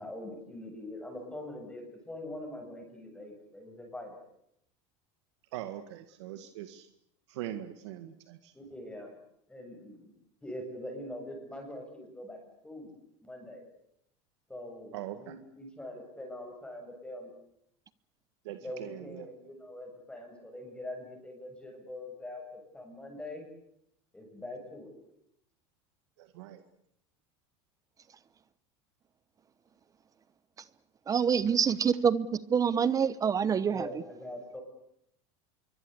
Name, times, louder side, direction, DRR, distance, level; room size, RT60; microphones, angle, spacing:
voice 1, 0.0-4.2 8.5-9.2 9.5-10.1 10.4-12.4 12.6-13.0 13.2-13.7 14.5-17.3 18.6-23.5 24.1-24.9 33.6-34.6, left 1 dB, 5° left, 3 dB, 7.6 m, -43 dB
voice 2, 5.5-6.9 7.3-8.5 14.9-15.3 18.4-19.3 26.2-26.6, right 12 dB, 85° right, 9 dB, 1.9 m, -41 dB
voice 3, 31.1-33.8, right 7 dB, 25° right, 17 dB, 1.0 m, -26 dB
26.0 x 23.5 x 8.2 m, 0.76 s
supercardioid pair, 130°, 14 cm